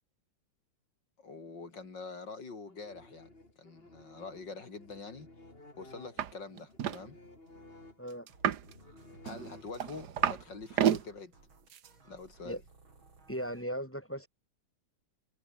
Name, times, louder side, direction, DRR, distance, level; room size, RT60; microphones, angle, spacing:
voice 1, 1.2-5.3 5.8-7.2 9.2-11.3 12.0-12.6, left 4 dB, 60° left, 4.4 m, -45 dB
sound 1, 2.7-10.2, left 2 dB, 30° left, 4.8 m, -55 dB
sound 2, 6.2-6.3 6.6-7.0 8.3-8.7 9.3-10.4 10.7-11.0 11.7-11.9, right 9 dB, 60° right, 1.6 m, -30 dB
sound 3, 8.3-13.7, right 4 dB, 90° right, 5.3 m, -59 dB
voice 2, 13.3-14.3, equal, 5° left, 3.8 m, -37 dB
omnidirectional pair, 2.2 m